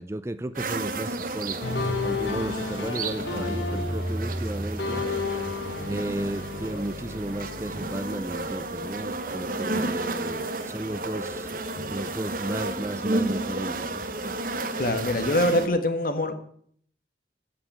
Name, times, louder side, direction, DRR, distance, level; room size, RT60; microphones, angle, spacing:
voice 1, 0.0-5.0 5.9-11.6 11.9-14.0, right 1 dB, 15° right, 14 dB, 0.4 m, -34 dB
sound 1, 0.5-15.7, right 2 dB, 50° right, 1.1 m, -32 dB
sound 2, 1.6-9.5 9.8-11.3 11.8-13.3, left 2 dB, 75° left, 2.2 m, -33 dB
voice 2, 14.8-16.3, left 1 dB, 50° left, 8 dB, 1.6 m, -24 dB
15.0 x 5.7 x 8.8 m, 0.62 s
head